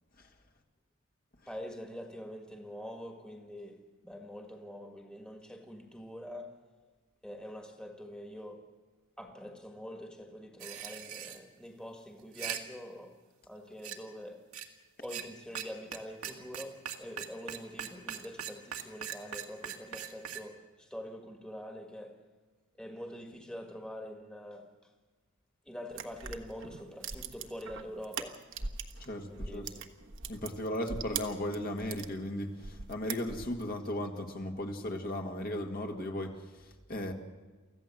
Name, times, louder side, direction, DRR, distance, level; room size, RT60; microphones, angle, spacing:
voice 1, 1.5-6.6 7.2-8.7 9.2-13.2 13.5-14.5 15.0-22.2 22.8-24.7 25.7-28.4 29.3-29.9, equal, 5° left, 1.7 m, -45 dB
sound 1, 10.6-11.4 12.2-12.6 13.8-14.0 14.5-14.7 15.0-15.2 15.5-15.6 15.9-16.0 16.2-20.4, right 9 dB, 80° right, 1.8 m, -39 dB
sound 2, 25.9-29.1 29.3-32.1 32.6-33.7, right 5 dB, 60° right, 1.3 m, -40 dB
voice 2, 29.0-29.7 30.3-37.1, left 1 dB, 45° left, 1.9 m, -36 dB
24.5 x 15.0 x 7.5 m
head